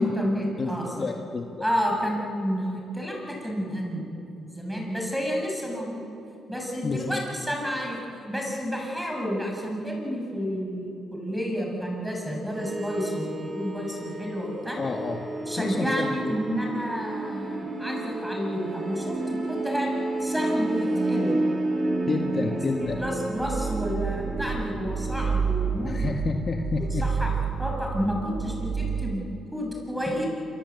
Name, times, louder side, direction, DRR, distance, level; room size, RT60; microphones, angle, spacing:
voice 1, 0.0-1.1 1.6-4.0 4.4-6.0 6.5-14.8 15.4-19.9 20.2-21.4 22.8-26.1 27.0-27.3 27.6-30.3, equal, ahead, 0 dB, 7.3 m, -30 dB
voice 2, 0.6-1.6 6.8-7.2 14.8-16.4 22.0-23.0 25.8-27.0, left 4 dB, 40° left, 3 dB, 1.7 m, -30 dB
horror ukulele, 12.5-29.1, right 3 dB, 35° right, 5.6 m, -30 dB
26.5 x 25.5 x 8.4 m, 2.9 s
cardioid pair, 90°, 0 cm